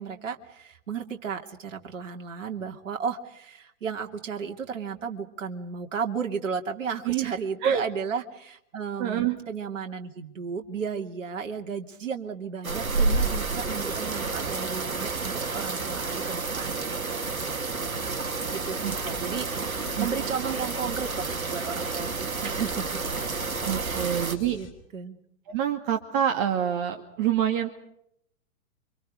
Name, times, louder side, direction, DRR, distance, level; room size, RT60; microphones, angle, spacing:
voice 1, 0.0-17.4 17.8-18.2 18.5-23.0 23.7-24.2 24.5-25.2, right 6 dB, 60° right, 4 dB, 2.9 m, -34 dB
voice 2, 9.0-9.4 18.8-19.0 19.2-19.5 19.9-20.1 23.6-24.6 25.5-27.7, right 9 dB, 40° right, 5 dB, 2.2 m, -26 dB
sound 1, 12.6-24.4, right 3 dB, 80° right, 2.0 m, -30 dB
sound 2, 17.7-24.7, left 7 dB, 30° left, 5.4 m, -47 dB
29.0 x 25.5 x 5.1 m, 0.75 s
figure-of-eight pair, 110°, 42 cm